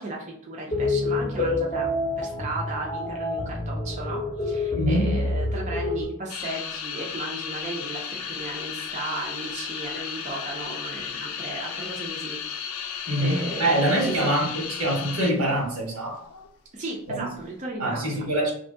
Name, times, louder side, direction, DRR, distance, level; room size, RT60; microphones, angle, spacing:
voice 1, 0.0-1.9 2.2-12.4 13.2-14.3 16.7-18.3, right 2 dB, 35° right, -2 dB, 0.5 m, -35 dB
sound 1, 0.7-6.0, left 2 dB, 25° left, 0.6 m, -27 dB
voice 2, 4.7-5.1 13.1-16.2 17.1-17.2 17.8-18.5, right 1 dB, 85° right, -2 dB, 1.3 m, -24 dB
sound 2, 6.3-15.5 15.8-16.5 17.1-17.5, left 7 dB, 85° left, 0.4 m, -34 dB
2.9 x 2.6 x 3.5 m, 0.66 s
head